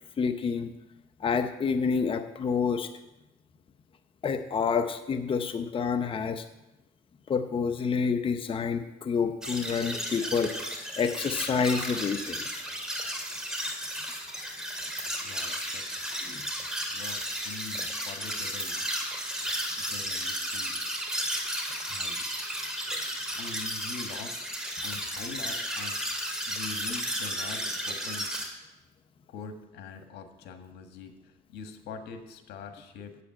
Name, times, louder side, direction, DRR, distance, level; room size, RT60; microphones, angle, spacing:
voice 1, 0.2-0.7 1.2-2.9 4.2-6.4 7.3-10.5 11.0-12.5 16.2-16.4, left 5 dB, 30° left, 7 dB, 0.7 m, -28 dB
sound 1, 9.4-28.5, equal, 5° right, 2.3 m, -34 dB
voice 2, 15.2-18.9 19.8-20.8 21.9-22.3 23.3-24.4 24.8-28.3 29.3-33.2, left 5 dB, 80° left, 7 dB, 1.4 m, -44 dB
8.4 x 7.8 x 8.7 m, 0.98 s
cardioid pair, 110°, 17 cm